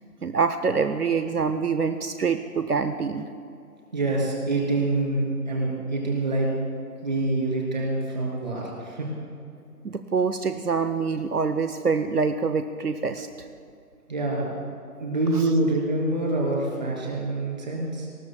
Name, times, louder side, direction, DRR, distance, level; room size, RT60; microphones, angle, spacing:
voice 1, 0.2-3.3 9.8-13.3, right 5 dB, 75° right, 10 dB, 0.8 m, -25 dB
voice 2, 3.9-6.5 7.0-9.1 14.1-14.5 15.0-18.1, right 2 dB, 30° right, -2 dB, 2.9 m, -26 dB
26.5 x 20.0 x 2.3 m, 2.5 s
figure-of-eight pair, 160°, 46 cm